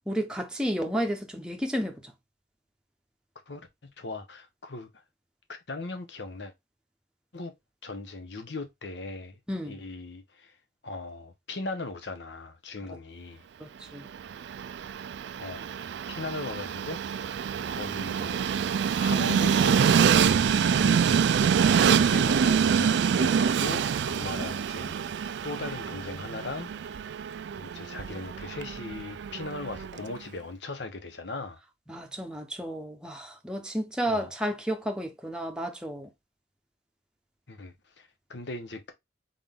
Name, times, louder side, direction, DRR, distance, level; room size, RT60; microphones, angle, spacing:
voice 1, 0.1-2.0 9.5-9.8 13.6-14.1 24.2-24.5 31.9-36.1, equal, 5° right, 0.8 m, -32 dB
voice 2, 3.5-4.9 5.5-6.5 7.3-7.5 7.8-9.4 9.7-10.5 10.8-13.4 15.3-17.4 17.7-18.5 18.9-25.2 25.4-26.7 27.6-31.6 34.0-34.3 37.5-38.9, left 2 dB, 65° left, 1.0 m, -39 dB
Train, 14.1-30.1, right 7 dB, 70° right, 0.3 m, -26 dB
3.9 x 3.9 x 3.5 m
head